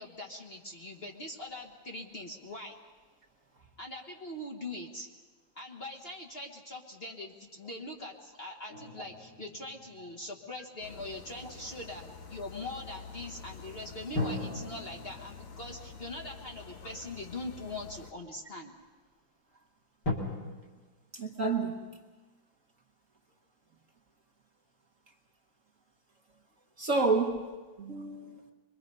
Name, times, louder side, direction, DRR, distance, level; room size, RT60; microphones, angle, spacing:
voice 1, 0.0-2.8 3.8-5.1 5.5-12.0 12.3-18.7, left 2 dB, 35° left, 1.4 m, -42 dB
sound 1, 8.7-11.3 14.1-17.5 18.2-18.3 20.0-20.1, left 2 dB, 60° left, 3.4 m, -39 dB
sound 2, 10.8-18.1, left 5 dB, 85° left, 2.3 m, -48 dB
voice 2, 21.1-21.9 26.8-27.5 27.8-28.4, right 3 dB, 45° right, 1.4 m, -29 dB
24.0 x 22.5 x 5.4 m
omnidirectional pair, 2.1 m